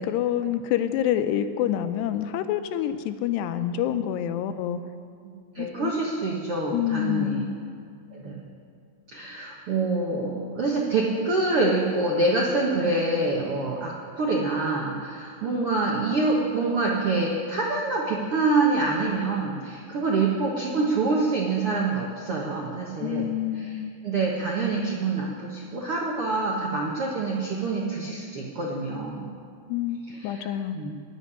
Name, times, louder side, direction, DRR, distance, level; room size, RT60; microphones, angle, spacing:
voice 1, 0.1-4.8 5.6-5.9 6.7-7.6 23.0-23.9 29.7-30.0 30.2-30.8, left 11 dB, 85° left, 9 dB, 2.8 m, -27 dB
voice 2, 5.5-7.4 8.1-8.4 9.1-29.3 30.1-30.5 30.7-30.9, right 3 dB, 70° right, -3 dB, 1.3 m, -26 dB
17.5 x 6.5 x 10.0 m, 2.2 s
omnidirectional pair, 4.8 m